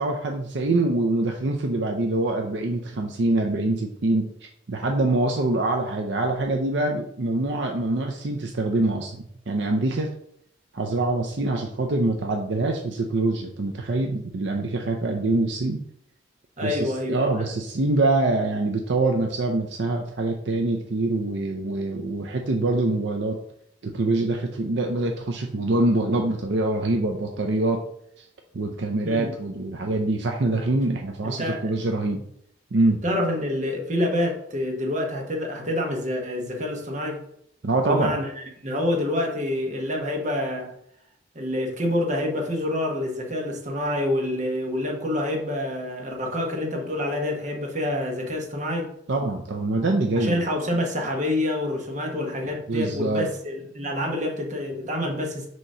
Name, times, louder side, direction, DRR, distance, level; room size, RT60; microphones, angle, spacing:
voice 1, 0.0-10.1 10.7-15.8 16.6-23.4 23.8-27.8 28.2-28.3 28.5-32.2 32.7-33.0 37.6-38.1 49.1-50.4 52.7-53.3, right 2 dB, 70° right, 2 dB, 0.6 m, -24 dB
voice 2, 16.6-17.5 29.0-29.3 31.2-31.6 33.0-37.2 37.8-40.7 41.3-48.9 50.2-55.5, left 1 dB, 40° right, 1 dB, 1.3 m, -27 dB
6.3 x 3.0 x 5.5 m, 0.72 s
head